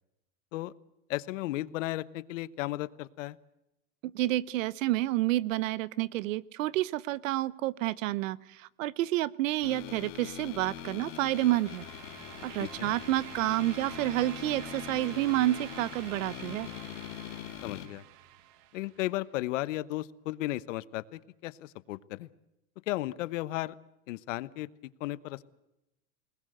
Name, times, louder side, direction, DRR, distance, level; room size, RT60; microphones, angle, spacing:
voice 1, 1.1-3.4 12.6-12.9 17.6-18.0 18.7-22.3 22.9-23.7 24.1-24.7 25.0-25.4, left 17 dB, 70° left, 18 dB, 1.2 m, -35 dB
voice 2, 4.1-11.8 12.4-16.7, right 16 dB, 75° right, 22 dB, 1.1 m, -29 dB
sound 1, 9.6-17.9, left 14 dB, 50° left, 2.3 m, -43 dB
sound 2, 10.2-19.1, right 12 dB, 45° right, 1.8 m, -48 dB
29.0 x 20.0 x 7.9 m, 0.90 s
supercardioid pair, 160°, 39 cm